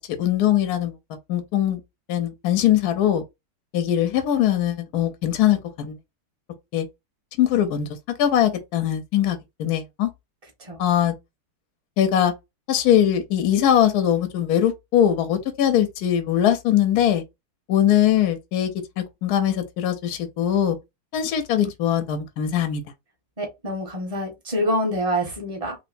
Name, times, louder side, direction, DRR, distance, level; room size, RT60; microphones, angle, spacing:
voice 1, 0.2-1.0 1.3-1.8 2.1-3.2 3.7-6.0 6.7-6.9 7.4-10.1 10.8-11.1 12.0-12.3 12.7-17.2 17.7-20.8 21.1-22.8, left 10 dB, 70° left, 0.9 m, -21 dB
voice 2, 23.4-25.8, equal, 25° right, 1.0 m, -26 dB
3.1 x 3.1 x 2.5 m
omnidirectional pair, 2.2 m